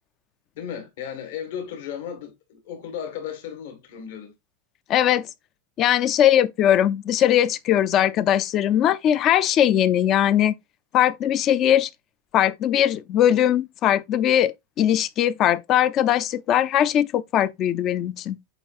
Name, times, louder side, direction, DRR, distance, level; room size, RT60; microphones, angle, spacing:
voice 1, 0.6-4.3, left 8 dB, 65° left, 1.8 m, -35 dB
voice 2, 4.9-5.3 5.8-10.6 10.9-11.9 12.3-18.4, left 11 dB, 30° left, 0.4 m, -20 dB
7.9 x 5.1 x 2.5 m
supercardioid pair, 165°, 0 cm